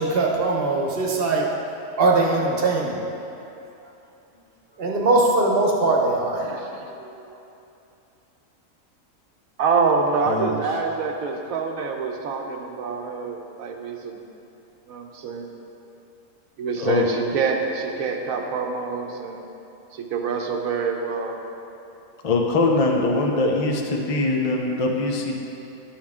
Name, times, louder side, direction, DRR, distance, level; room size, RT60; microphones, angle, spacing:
voice 1, 0.0-1.5 2.0-3.0 4.8-6.4 6.9-7.1, right 3 dB, 45° right, 0 dB, 1.1 m, -21 dB
voice 2, 6.4-6.9 9.6-14.3 14.9-15.5 16.6-19.5 19.9-21.4, right 5 dB, 80° right, 2 dB, 1.2 m, -26 dB
voice 3, 10.2-10.8 16.7-17.1 22.2-25.3, left 2 dB, 35° left, 1 dB, 0.6 m, -22 dB
10.5 x 7.3 x 3.6 m, 2.8 s
omnidirectional pair, 1.5 m